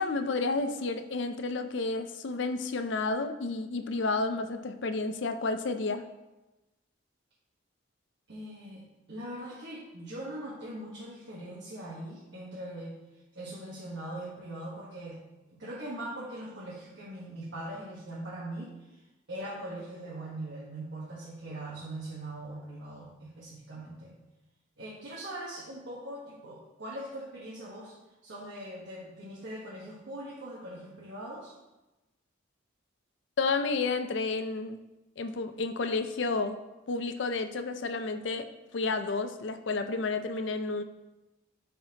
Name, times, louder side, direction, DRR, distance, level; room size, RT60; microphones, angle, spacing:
voice 1, 0.0-6.0 33.4-34.8 35.2-36.6 36.9-38.5 38.7-40.8, left 3 dB, 65° left, 9 dB, 0.5 m, -31 dB
voice 2, 8.3-8.8 9.1-13.0 13.3-15.2 15.5-24.1 24.8-27.9 28.2-31.6, right 1 dB, 60° right, -7 dB, 1.4 m, -41 dB
11.5 x 4.2 x 2.9 m, 1.0 s
head